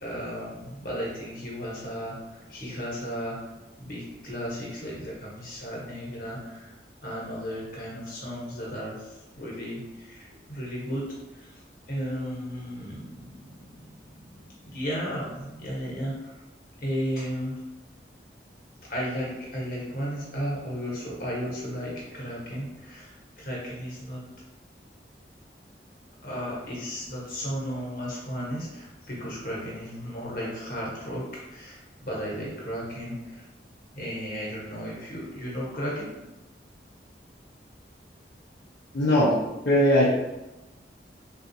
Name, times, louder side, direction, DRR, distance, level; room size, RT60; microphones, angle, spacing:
voice 1, 0.0-6.7 7.0-11.6 11.9-13.9 14.3-16.4 16.8-17.6 18.9-24.2 26.2-33.4 33.9-36.2, equal, 50° left, -5 dB, 1.0 m, -34 dB
voice 2, 38.9-39.3 39.6-40.0, left 1 dB, 70° left, -6 dB, 0.5 m, -19 dB
3.6 x 2.4 x 2.7 m, 1.0 s
head